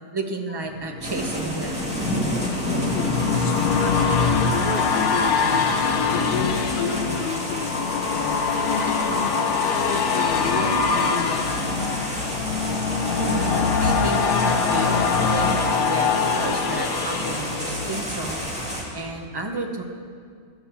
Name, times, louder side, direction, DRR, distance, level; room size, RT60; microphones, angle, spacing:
voice 1, 0.1-2.0 13.1-19.8, right 2 dB, 25° right, 3 dB, 0.6 m, -31 dB
sound 1, 0.8-18.5 19.0-19.1, left 5 dB, 85° left, 1.2 m, -24 dB
sound 2, 1.0-18.8, equal, 5° right, 1.9 m, -31 dB
voice 2, 2.9-7.7 8.1-8.4 8.6-9.4 9.8-11.7, left 5 dB, 50° left, 6 dB, 0.7 m, -31 dB
13.5 x 5.8 x 6.9 m, 2.1 s
omnidirectional pair, 1.5 m